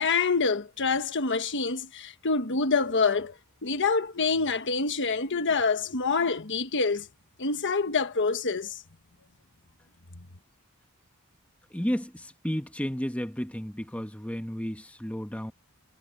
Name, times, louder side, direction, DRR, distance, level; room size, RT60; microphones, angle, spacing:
voice 1, 0.0-3.4 3.6-7.1 7.4-8.8, left 4 dB, 55° left, 1.3 m, -26 dB
voice 2, 11.7-15.5, equal, 5° left, 1.2 m, -32 dB
head